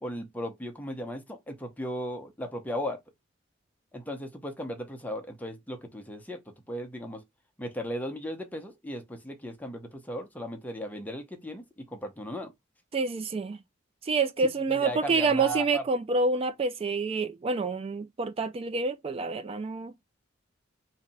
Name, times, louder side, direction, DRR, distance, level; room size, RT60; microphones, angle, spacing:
voice 1, 0.0-3.0 3.9-6.4 6.7-7.2 7.6-12.5 14.7-15.8, equal, 10° left, 0.8 m, -36 dB
voice 2, 12.9-13.6 14.0-19.9, right 4 dB, 30° right, 0.3 m, -27 dB
3.2 x 2.8 x 4.1 m
head